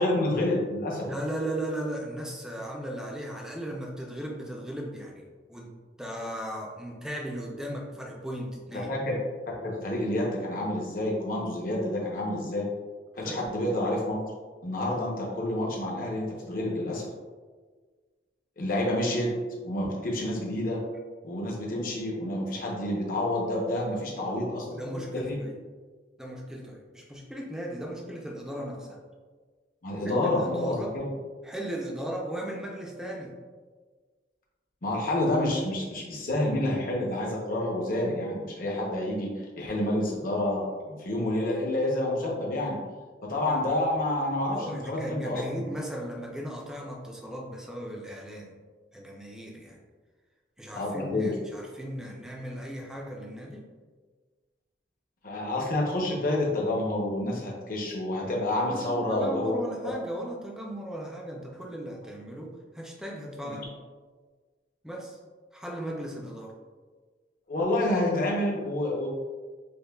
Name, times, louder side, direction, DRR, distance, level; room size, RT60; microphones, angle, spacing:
voice 1, 0.0-1.1 8.9-9.1 9.6-12.7 13.2-14.2 14.6-17.1 18.6-19.3 19.6-20.8 21.2-25.4 29.8-31.0 34.8-42.8 43.2-45.6 50.7-51.3 55.2-59.6 63.4-63.5 67.5-69.1, left 1 dB, 55° left, -2 dB, 0.8 m, -28 dB
voice 2, 1.1-5.2 5.5-8.9 13.2-13.5 24.3-25.6 26.2-29.0 30.1-31.0 31.4-33.3 44.5-48.6 48.9-49.8 50.6-53.7 58.7-63.7 64.8-65.2 65.5-66.6, right 1 dB, 5° right, -1 dB, 0.4 m, -37 dB
5.3 x 2.2 x 2.2 m, 1.4 s
head